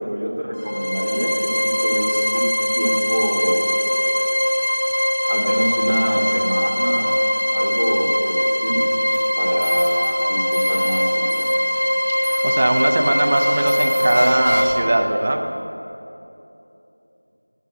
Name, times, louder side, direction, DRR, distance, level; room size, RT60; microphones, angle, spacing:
voice 1, 0.0-2.5 2.7-3.8 5.3-8.9 9.4-11.5, equal, 65° right, -1 dB, 1.8 m, -26 dB
sound 1, 0.5-14.7, equal, 45° left, 1.0 m, -21 dB
sound 2, 9.0-9.2 9.6-10.1 10.5-11.0 11.3-11.9 12.2-12.8 13.4-14.9, equal, 30° left, 2.6 m, -33 dB
voice 2, 12.1-15.4, right 1 dB, 15° right, 3 dB, 0.4 m, -20 dB
10.5 x 5.5 x 7.8 m, 2.9 s
figure-of-eight pair, 175°, 0 cm